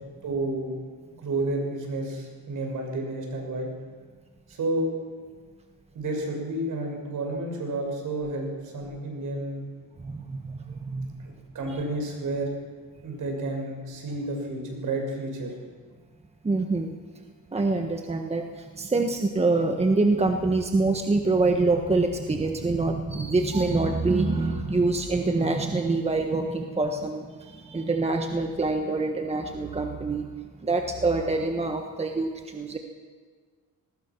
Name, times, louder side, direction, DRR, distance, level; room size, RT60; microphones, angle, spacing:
voice 1, 0.2-0.7 1.2-3.7 4.5-4.9 5.9-9.6 11.2-12.5 13.0-15.5, right 2 dB, 60° right, 2 dB, 6.3 m, -30 dB
voice 2, 10.0-11.3 16.4-17.0 17.5-30.3 30.6-32.8, right 3 dB, 15° right, 4 dB, 1.4 m, -25 dB
22.0 x 19.5 x 6.1 m, 1.5 s
cardioid pair, 125°, 35 cm